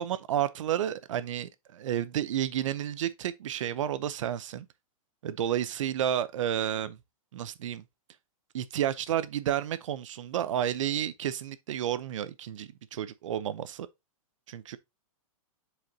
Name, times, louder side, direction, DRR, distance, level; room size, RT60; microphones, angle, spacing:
voice 1, 0.0-4.7 5.2-7.0 7.3-7.8 8.5-13.9 14.5-14.8, right 10 dB, 55° right, 0.7 m, -31 dB
7.7 x 5.0 x 2.7 m
hypercardioid pair, 170°, 19 cm